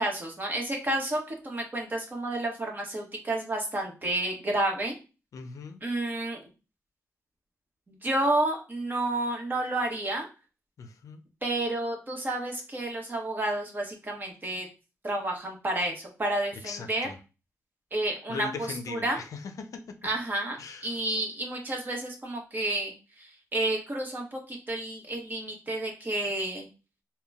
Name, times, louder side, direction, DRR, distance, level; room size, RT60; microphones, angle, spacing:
voice 1, 0.0-4.9 5.8-6.4 7.9-10.3 11.4-14.7 15.0-17.1 17.9-19.2 20.0-22.9 23.2-26.7, right 1 dB, 35° right, 1.2 m, -30 dB
voice 2, 5.3-5.8 10.8-11.2 16.6-17.2 18.3-20.0 20.6-21.0, left 5 dB, 70° left, 0.5 m, -39 dB
3.8 x 2.2 x 3.5 m
cardioid pair, 75°, 6 cm